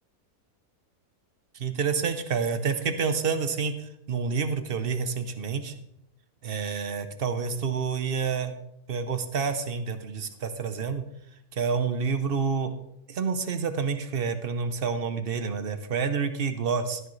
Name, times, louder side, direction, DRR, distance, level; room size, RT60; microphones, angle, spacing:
voice 1, 1.5-5.7 6.4-8.5 8.9-11.0 11.5-12.7 13.1-17.0, right 5 dB, 45° right, 9 dB, 0.8 m, -28 dB
12.0 x 11.0 x 3.2 m, 0.80 s
omnidirectional pair, 1.7 m